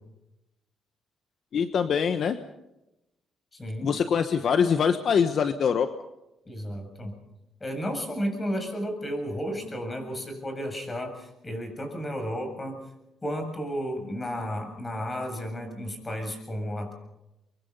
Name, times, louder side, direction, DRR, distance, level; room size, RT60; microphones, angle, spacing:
voice 1, 1.5-2.4 3.8-5.9, left 7 dB, 60° left, 10 dB, 1.2 m, -23 dB
voice 2, 3.5-3.9 6.5-7.1 7.6-12.8 13.2-16.9, equal, 20° left, 5 dB, 7.4 m, -33 dB
24.5 x 23.5 x 5.5 m, 0.91 s
cardioid pair, 90°, 0 cm